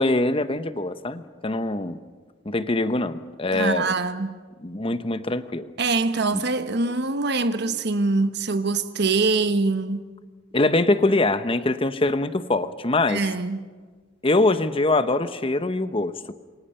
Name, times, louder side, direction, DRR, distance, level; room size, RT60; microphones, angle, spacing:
voice 1, 0.0-2.0 2.4-3.9 4.6-5.7 6.3-6.4 10.5-13.2 14.2-16.3, left 2 dB, 30° left, 0.9 m, -23 dB
voice 2, 3.5-4.4 5.8-10.0 13.1-13.7, right 3 dB, 60° right, 1.1 m, -24 dB
28.0 x 23.5 x 5.6 m
head